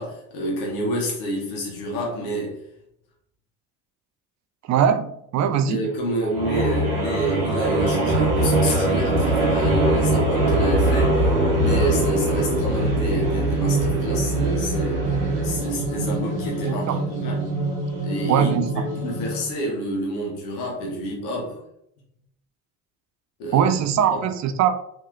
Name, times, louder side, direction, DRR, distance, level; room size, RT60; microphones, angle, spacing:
voice 1, 0.0-2.6 5.7-17.5 18.0-21.6 23.4-23.7 24.1-24.2, equal, 80° left, -2 dB, 1.0 m, -29 dB
voice 2, 4.7-5.9 16.6-17.0 18.3-18.9 23.5-24.8, right 8 dB, 40° right, 10 dB, 0.4 m, -21 dB
sound 1, 6.3-19.6, right 2 dB, 85° right, 1.0 m, -22 dB
3.0 x 2.7 x 2.4 m, 0.78 s
hypercardioid pair, 60°, 45 cm